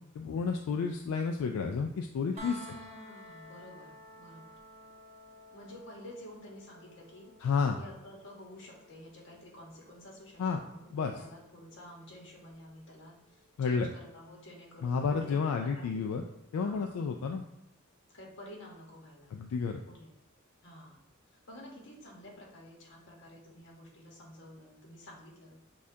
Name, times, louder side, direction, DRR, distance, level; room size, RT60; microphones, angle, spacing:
voice 1, 0.2-2.6 7.4-7.8 10.4-10.6 10.9-11.1 13.6-13.9 14.8-16.2 16.5-17.4 19.3-19.8, left 5 dB, 85° left, 3 dB, 0.3 m, -31 dB
voice 2, 2.3-4.6 5.5-7.3 7.8-16.1 16.5-17.0 18.1-19.4 19.9-20.1 20.6-21.0 21.3-25.6, left 1 dB, 55° left, -2 dB, 1.1 m, -50 dB
sound 1, 2.4-14.2 16.1-16.2, equal, 30° right, 0.6 m, -54 dB
6.3 x 2.4 x 2.7 m, 0.85 s
head